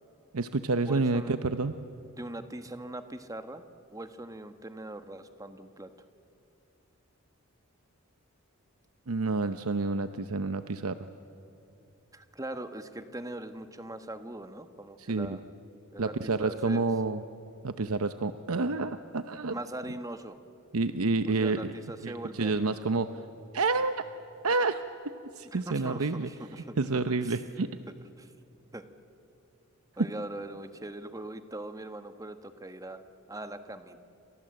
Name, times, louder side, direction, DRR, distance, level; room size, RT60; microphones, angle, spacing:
voice 1, 0.3-1.7 9.1-11.0 15.0-15.4 16.0-17.2 17.6-19.5 20.7-21.7 22.0-23.1 23.5-24.0 24.4-24.8 25.4-26.3 26.8-27.7, right 3 dB, 80° right, 10 dB, 0.8 m, -29 dB
voice 2, 0.8-1.4 2.2-3.6 3.9-5.9 12.1-15.4 15.9-16.9 19.5-20.4 21.3-22.8 25.5-27.4 28.2-28.3 28.7-28.8 30.0-33.0 33.3-34.0, right 1 dB, 15° right, 9 dB, 1.2 m, -41 dB
29.5 x 26.0 x 7.8 m, 2.8 s
head